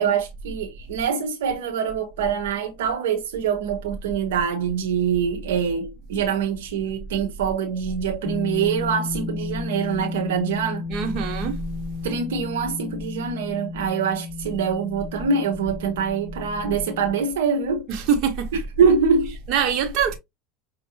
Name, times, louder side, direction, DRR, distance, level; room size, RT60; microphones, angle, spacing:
voice 1, 0.0-10.8 12.0-17.8 18.8-19.3, right 6 dB, 85° right, 0.8 m, -24 dB
sound 1, 8.2-17.3, left 4 dB, 45° left, 1.0 m, -33 dB
voice 2, 10.9-11.6 17.9-18.5 19.5-20.2, right 7 dB, 55° right, 1.2 m, -23 dB
5.6 x 2.5 x 2.8 m
supercardioid pair, 110°, 0 cm